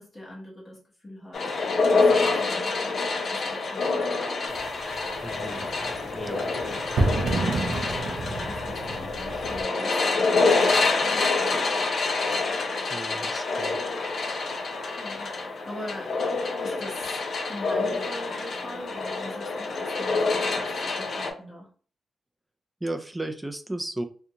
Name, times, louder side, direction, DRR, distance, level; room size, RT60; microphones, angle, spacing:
voice 1, 0.0-1.6 1.9-4.2 6.5-7.0 7.5-11.3 15.0-15.3 15.6-16.2 16.6-17.2 17.5-21.7, left 1 dB, 20° left, -5 dB, 1.0 m, -42 dB
sound 1, 1.3-21.3, left 3 dB, 55° left, 0.5 m, -27 dB
sound 2, 4.5-9.6, right 2 dB, 75° right, 0.5 m, -30 dB
voice 2, 5.2-5.7 6.1-6.5 12.9-13.9 22.8-24.0, right 1 dB, 10° right, 6 dB, 0.3 m, -34 dB
2.5 x 2.2 x 2.8 m, 0.41 s
wide cardioid pair, 165°, 0 cm